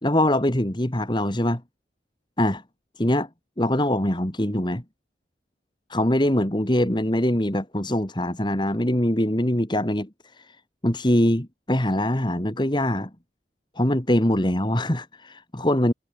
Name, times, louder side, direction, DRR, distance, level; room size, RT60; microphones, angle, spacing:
voice 1, 0.0-1.6 2.4-2.6 3.0-3.3 3.6-4.8 5.9-10.6 10.8-13.1 13.8-15.9, left 1 dB, 25° left, 2.3 m, -23 dB
head